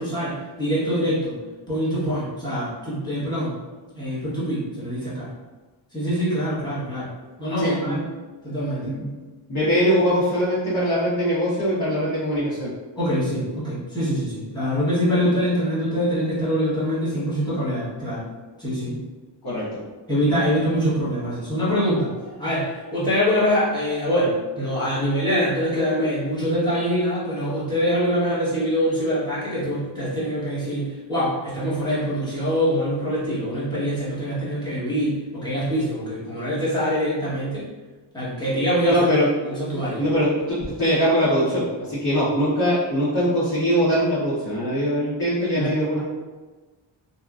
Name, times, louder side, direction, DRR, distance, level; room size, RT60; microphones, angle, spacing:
voice 1, 0.0-1.4 1.7-3.5 3.9-5.3 5.9-7.1 7.4-8.0 8.4-9.0 13.0-18.3 18.6-19.0 20.1-22.1 22.4-37.6 38.1-39.1 39.4-40.0 45.5-45.7, equal, 10° left, -9 dB, 1.0 m, -24 dB
voice 2, 7.6-8.0 8.8-9.1 9.5-12.7 19.4-19.6 21.7-21.8 38.9-39.3 40.0-46.0, equal, 50° left, -11 dB, 1.0 m, -22 dB
2.8 x 2.4 x 2.3 m, 1.3 s
wide cardioid pair, 135°, 46 cm